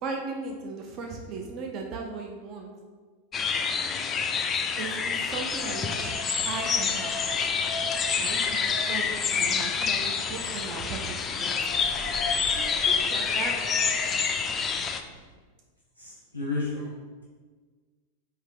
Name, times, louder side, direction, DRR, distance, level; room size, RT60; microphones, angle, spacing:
voice 1, 0.0-2.7 4.8-6.2 6.4-7.1 8.2-11.7 12.5-13.5, right 4 dB, 35° right, 2 dB, 0.5 m, -37 dB
sound 1, 3.3-15.0, left 6 dB, 25° left, 0.3 m, -27 dB
sound 2, 5.2-15.2, equal, 55° right, 1.2 m, -42 dB
voice 2, 14.6-15.4 16.0-17.2, left 3 dB, 85° right, -7 dB, 1.0 m, -35 dB
4.5 x 2.8 x 3.7 m, 1.4 s
figure-of-eight pair, 90°, 0 cm